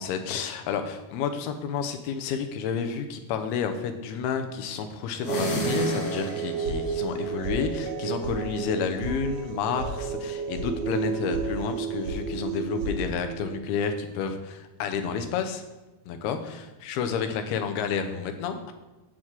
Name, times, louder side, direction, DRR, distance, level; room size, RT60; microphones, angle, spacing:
voice 1, 0.0-15.6 16.1-18.7, left 6 dB, 80° left, 7 dB, 2.7 m, -30 dB
sound 1, 5.1-6.8, left 1 dB, 60° left, 2.7 m, -32 dB
sound 2, 5.3-13.6, right 6 dB, 80° right, 2.5 m, -32 dB
sound 3, 6.6-7.2 7.4-8.0 8.2-8.3 8.7-9.1 9.4-9.9 10.2-10.7 11.0-11.5 11.7-12.2 12.5-13.0, right 1 dB, 50° right, 2.3 m, -36 dB
8.6 x 4.6 x 7.3 m, 1.1 s
omnidirectional pair, 4.6 m